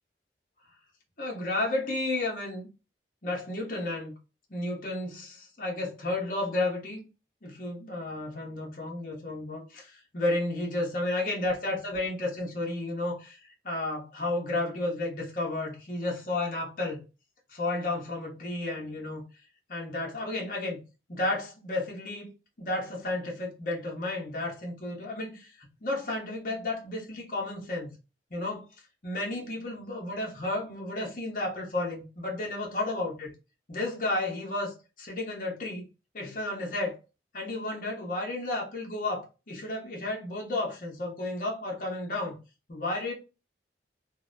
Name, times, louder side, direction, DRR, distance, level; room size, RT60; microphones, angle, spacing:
voice 1, 1.2-2.7 3.2-4.1 4.5-7.1 7.4-17.0 17.5-19.2 19.7-20.8 21.1-22.3 22.6-27.9 28.3-28.7 29.0-33.3 33.7-35.9 36.1-37.0 37.3-42.4 42.7-43.1, left 2 dB, 45° left, 0.8 m, -32 dB
2.6 x 2.1 x 2.5 m
head